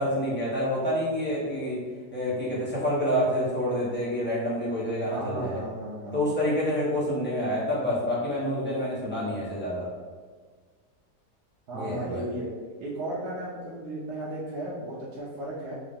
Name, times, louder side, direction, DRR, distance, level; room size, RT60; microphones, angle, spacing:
voice 1, 0.0-1.8 2.1-5.6 6.1-9.9 11.7-12.2, equal, 10° left, -8 dB, 0.8 m, -28 dB
voice 2, 5.1-6.3 11.7-12.5 12.8-15.7, right 1 dB, 75° right, -6 dB, 1.2 m, -35 dB
3.7 x 2.6 x 3.5 m, 1.5 s
omnidirectional pair, 1.8 m